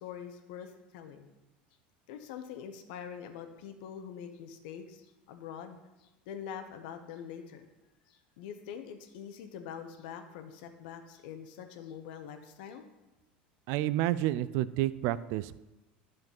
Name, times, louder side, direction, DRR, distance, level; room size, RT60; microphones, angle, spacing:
voice 1, 0.0-1.3 2.1-7.6 8.1-12.9, left 8 dB, 70° left, 7 dB, 1.2 m, -44 dB
voice 2, 13.7-15.6, right 14 dB, 60° right, 17 dB, 0.4 m, -30 dB
10.5 x 5.3 x 5.5 m, 1.0 s
hypercardioid pair, 85°, 5 cm